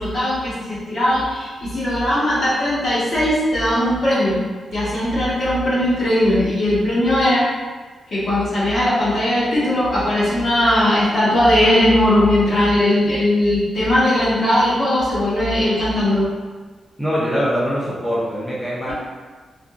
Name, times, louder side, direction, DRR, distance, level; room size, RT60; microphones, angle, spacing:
voice 1, 0.0-4.4 4.7-7.5 8.1-16.3 18.9-19.0, left 1 dB, 55° left, -9 dB, 1.1 m, -18 dB
voice 2, 17.0-18.9, equal, 5° left, -8 dB, 0.5 m, -22 dB
2.8 x 2.5 x 2.3 m, 1.4 s
wide cardioid pair, 150°, 0 cm